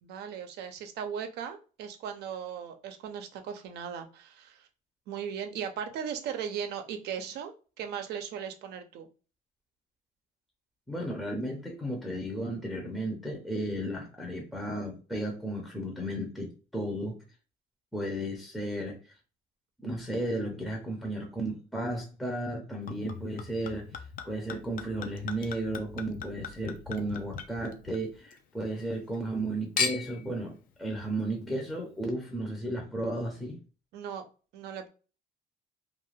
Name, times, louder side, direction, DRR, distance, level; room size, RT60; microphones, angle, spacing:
voice 1, 0.0-4.7 5.1-9.1 33.9-34.3 34.5-34.9, right 8 dB, 75° right, 0.5 m, -37 dB
voice 2, 10.9-17.2 17.9-19.0 19.8-23.9 24.3-33.6, right 1 dB, ahead, 0.6 m, -34 dB
Chink clink / Liquid, 22.9-28.4 28.7-29.4 29.8-30.3 31.0-31.1, left 6 dB, 55° left, 0.5 m, -37 dB
2.4 x 2.3 x 3.1 m
cardioid pair, 110°, 17 cm